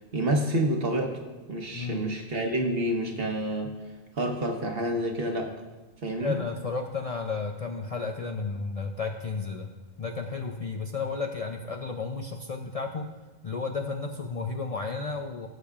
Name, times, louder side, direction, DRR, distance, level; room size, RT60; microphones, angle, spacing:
voice 1, 0.1-1.1 1.5-3.7 4.2-5.5 6.0-6.4, right 1 dB, 60° right, 2 dB, 1.3 m, -28 dB
voice 2, 1.7-2.1 6.2-9.7 10.0-13.1 13.4-15.5, left 4 dB, 50° left, 3 dB, 0.5 m, -33 dB
16.5 x 7.1 x 2.4 m, 1.2 s
omnidirectional pair, 1.2 m